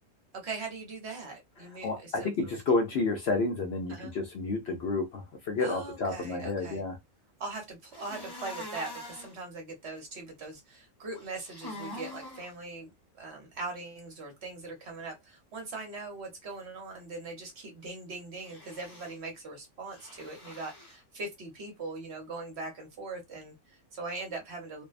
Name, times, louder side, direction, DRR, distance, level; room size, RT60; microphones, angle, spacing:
voice 1, 0.3-2.6 3.9-4.1 5.6-6.8 7.4-12.9 13.2-24.8, right 3 dB, 55° right, 1.1 m, -41 dB
voice 2, 1.8-7.0, left 3 dB, 60° left, 0.7 m, -30 dB
sound 1, 7.9-9.3 11.1-12.5 18.4-19.2 19.9-21.0, left 1 dB, 25° left, 0.6 m, -44 dB
2.6 x 2.1 x 2.4 m
omnidirectional pair, 1.4 m